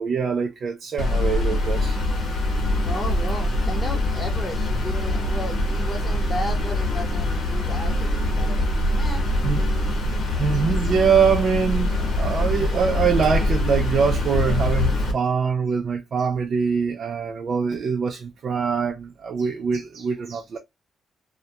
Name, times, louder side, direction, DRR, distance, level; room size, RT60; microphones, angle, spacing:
voice 1, 0.0-2.0 9.4-9.6 10.4-20.6, right 6 dB, 50° right, 0.3 m, -23 dB
sound 1, 1.0-15.1, left 1 dB, 65° left, 0.8 m, -23 dB
voice 2, 2.8-8.7 8.9-9.2, left 1 dB, 20° left, 0.9 m, -34 dB
2.2 x 2.1 x 2.7 m
cardioid pair, 135°, 0 cm